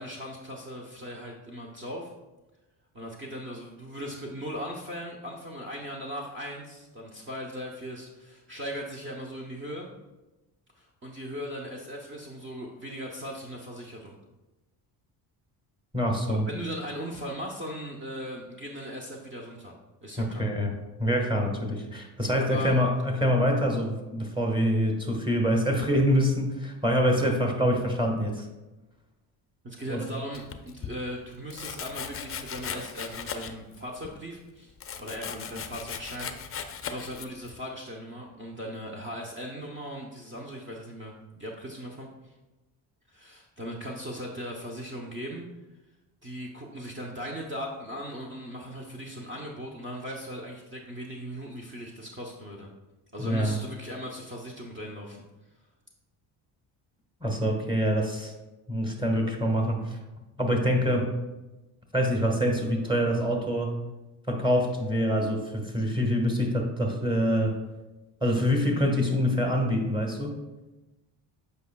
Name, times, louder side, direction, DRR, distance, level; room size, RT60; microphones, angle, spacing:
voice 1, 0.0-2.1 2.9-9.9 10.7-14.2 16.3-19.7 20.0-20.4 22.4-22.8 29.6-34.7 35.0-42.3 43.1-45.5 46.2-52.7 53.1-55.2, equal, 25° right, -2 dB, 0.9 m, -38 dB
voice 2, 15.9-16.5 20.2-28.5 29.9-30.0 53.2-53.6 57.2-58.3 58.7-60.0 60.4-61.1 61.9-63.7 64.3-67.6 68.2-70.4, equal, 10° right, 2 dB, 1.4 m, -25 dB
Domestic sounds home sounds, 30.3-30.9 31.5-33.7 34.0-37.6, left 7 dB, 30° left, 0.5 m, -38 dB
8.0 x 5.3 x 2.3 m, 1.1 s
cardioid pair, 85°, 46 cm